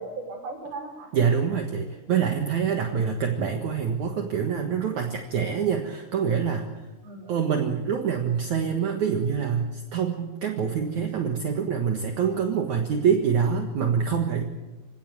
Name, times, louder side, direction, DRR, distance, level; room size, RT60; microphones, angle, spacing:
voice 1, 0.0-1.1 2.8-3.1 7.0-7.4, right 3 dB, 75° right, 2 dB, 7.0 m, -38 dB
voice 2, 1.1-6.7 7.3-14.4, right 7 dB, 60° right, 3 dB, 2.6 m, -25 dB
26.5 x 17.0 x 7.9 m, 1.1 s
omnidirectional pair, 4.5 m